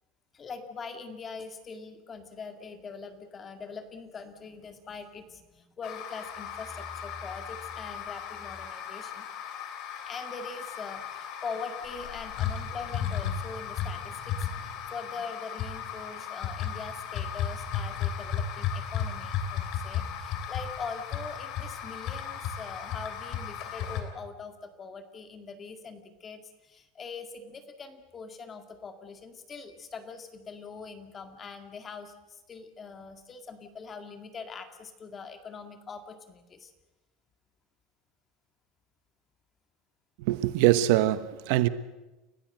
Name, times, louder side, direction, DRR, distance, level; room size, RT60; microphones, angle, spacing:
voice 1, 0.3-9.3 9.9-36.7, left 5 dB, 20° left, 2.0 m, -42 dB
sound 1, 5.8-24.0, left 8 dB, 45° left, 2.9 m, -35 dB
voice 2, 40.2-41.7, right 14 dB, 60° right, 0.9 m, -23 dB
30.0 x 15.0 x 7.8 m
supercardioid pair, 165°, 0 cm